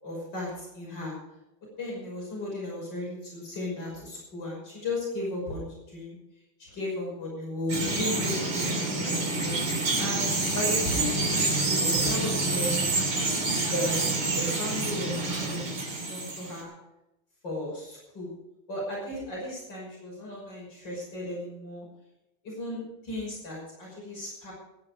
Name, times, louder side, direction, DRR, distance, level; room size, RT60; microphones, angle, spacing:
voice 1, 0.0-1.1 1.8-6.2 6.6-9.6 10.0-12.8 13.6-16.7 17.4-18.3 18.7-21.9 22.4-24.5, left 1 dB, 55° left, -4 dB, 6.5 m, -35 dB
Bird vocalization bird call bird song, 7.7-16.6, right 2 dB, 85° right, 4.0 m, -27 dB
19.0 x 9.5 x 5.1 m, 0.94 s
omnidirectional pair, 2.3 m